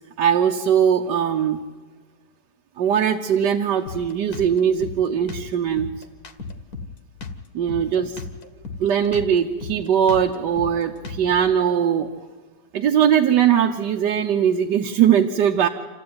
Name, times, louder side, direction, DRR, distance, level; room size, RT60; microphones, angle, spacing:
voice 1, 0.2-1.6 2.8-5.9 7.5-8.2 8.8-12.1 12.7-15.7, right 8 dB, 80° right, 3 dB, 1.5 m, -20 dB
Drum kit, 3.9-11.5, left 4 dB, 60° left, 1.9 m, -36 dB
27.5 x 14.5 x 9.5 m, 1.5 s
omnidirectional pair, 1.8 m